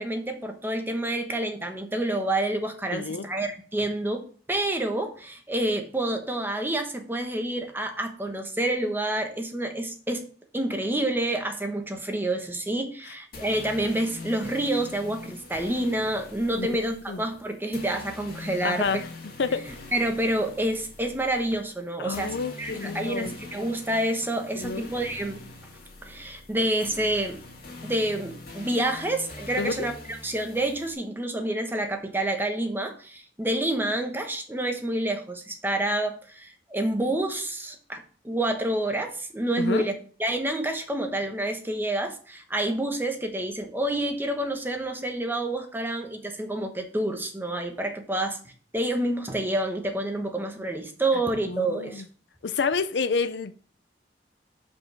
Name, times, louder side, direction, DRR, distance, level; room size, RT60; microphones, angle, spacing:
voice 1, 0.0-10.3 10.5-18.9 19.9-25.4 26.0-27.4 27.8-29.9 30.2-39.9 40.2-48.4 48.7-52.0, right 1 dB, 10° right, 1.0 m, -28 dB
voice 2, 2.9-3.3 16.6-17.2 18.6-19.0 19.4-19.7 22.0-23.4 24.5-24.9 29.6-29.9 39.6-39.9 51.5-52.0 52.4-53.5, left 4 dB, 75° left, 0.5 m, -29 dB
sound 1, 13.3-30.9, left 3 dB, 60° left, 2.0 m, -43 dB
5.4 x 5.2 x 5.9 m
head